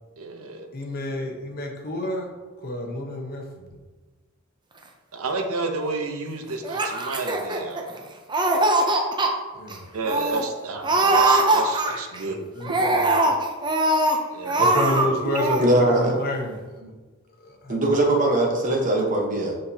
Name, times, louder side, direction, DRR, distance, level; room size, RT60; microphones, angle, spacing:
voice 1, 0.2-0.7 5.1-7.8 9.9-12.4 14.3-14.6, right 3 dB, 75° right, 4 dB, 0.8 m, -31 dB
voice 2, 0.7-2.3 2.6-3.8 9.5-9.9 12.2-13.3 14.6-16.9 17.4-17.8, left 1 dB, 45° left, 1 dB, 0.9 m, -30 dB
Laughter, 6.6-8.0 8.3-9.3 9.7-9.8 10.0-10.4 10.8-12.2 12.6-14.2 14.4-15.1 15.3-15.6, right 2 dB, 20° right, 0.5 m, -21 dB
voice 3, 15.6-16.2 17.7-19.5, right 1 dB, 35° right, 0 dB, 1.0 m, -21 dB
6.8 x 5.3 x 2.8 m, 1.3 s
head